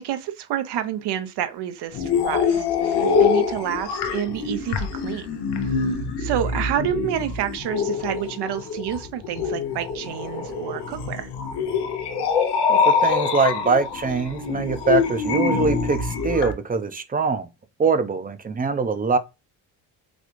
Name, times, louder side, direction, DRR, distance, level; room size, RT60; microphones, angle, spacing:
voice 1, 0.0-5.3 5.6-5.9 6.2-11.3, right 11 dB, 75° right, 0.6 m, -29 dB
sound 1, 1.9-16.5, left 5 dB, 80° left, 0.7 m, -24 dB
voice 2, 12.7-17.5 17.8-19.2, right 4 dB, 20° right, 0.5 m, -23 dB
4.1 x 2.3 x 3.0 m
cardioid pair, 100°, 40 cm